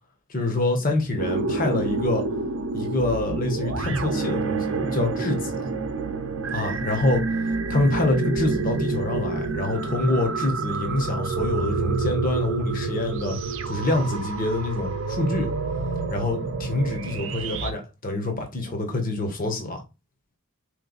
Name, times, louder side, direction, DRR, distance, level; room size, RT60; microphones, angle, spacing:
voice 1, 0.3-2.2 2.7-5.7 6.5-7.2 7.7-13.3 13.6-15.5 16.1-19.8, left 2 dB, 40° left, 1.1 m, -26 dB
sound 1, 1.2-17.7, right 3 dB, 60° right, 0.6 m, -28 dB
3.9 x 3.2 x 4.0 m
head